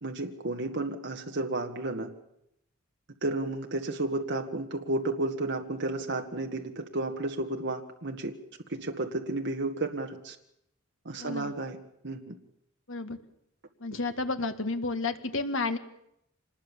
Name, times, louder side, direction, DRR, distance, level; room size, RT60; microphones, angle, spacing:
voice 1, 0.0-2.1 3.2-8.3 8.7-10.4 11.1-11.8 12.0-12.3 13.9-14.0, right 2 dB, 55° right, 3 dB, 1.8 m, -32 dB
voice 2, 11.2-11.5 12.9-13.2 13.8-15.8, left 3 dB, 65° left, 8 dB, 2.0 m, -31 dB
26.0 x 20.5 x 7.4 m, 0.77 s
head